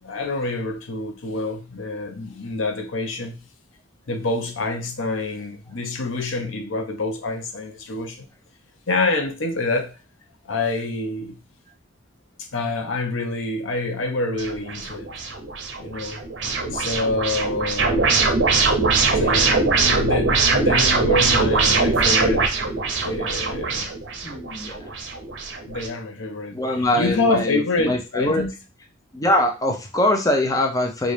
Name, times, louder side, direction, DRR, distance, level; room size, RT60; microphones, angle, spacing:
voice 1, 0.0-3.4 4.1-8.3 8.9-9.9 10.4-11.4 12.5-15.1 15.8-16.2 16.7-18.4 19.1-22.5 22.9-23.9 25.7-28.5, left 2 dB, 85° left, 0.7 m, -27 dB
sound 1, 14.4-25.9, right 4 dB, 60° right, 0.7 m, -22 dB
voice 2, 24.2-24.8 26.5-28.4 29.1-31.1, left 1 dB, 20° left, 0.5 m, -22 dB
4.0 x 2.4 x 3.3 m
head